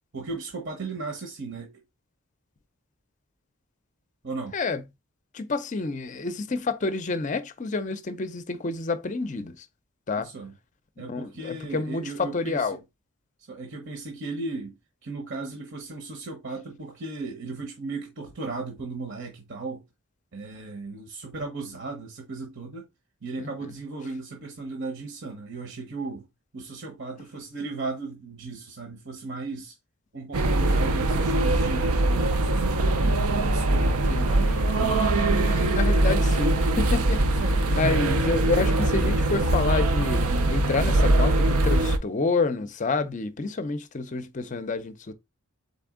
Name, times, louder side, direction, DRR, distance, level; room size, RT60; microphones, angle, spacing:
voice 1, 0.1-1.7 4.2-4.6 10.2-10.5 11.0-12.8 13.4-14.8 15.0-19.8 20.3-22.8 23.2-26.3 26.5-29.8 30.1-33.1 33.4-34.6 37.4-38.0, right 3 dB, 55° right, 0.9 m, -36 dB
voice 2, 5.3-9.7 10.1-10.3 11.1-12.8 23.4-23.5 34.1-37.2 37.7-45.1, left 3 dB, 35° left, 0.5 m, -29 dB
sound 1, 30.3-42.0, right 2 dB, 85° right, 0.6 m, -22 dB
4.1 x 3.4 x 3.6 m
head